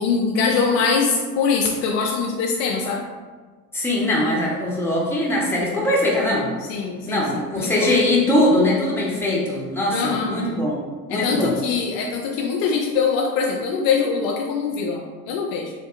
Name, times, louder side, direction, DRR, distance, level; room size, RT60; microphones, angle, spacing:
voice 1, 0.0-3.0 6.7-7.9 9.9-10.3 11.1-15.7, left 5 dB, 55° left, 0 dB, 0.5 m, -23 dB
voice 2, 3.7-6.5 7.1-10.8 11.1-11.6, left 1 dB, 5° left, -5 dB, 0.9 m, -21 dB
3.5 x 2.6 x 2.4 m, 1.4 s
hypercardioid pair, 80°, 50 cm